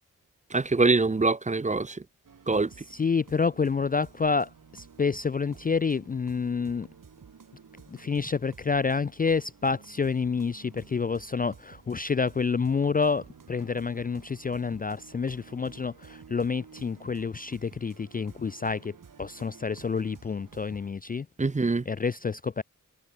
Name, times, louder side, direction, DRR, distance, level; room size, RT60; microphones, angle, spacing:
voice 1, 0.5-2.0 2.5-2.7 21.4-21.8, right 3 dB, 25° right, 0.6 m, -24 dB
sound 1, 2.2-20.9, right 6 dB, 85° right, 3.5 m, -52 dB
voice 2, 2.9-6.9 7.9-21.3 21.9-22.6, left 5 dB, 30° left, 0.3 m, -28 dB
wide cardioid pair, 60°, 32 cm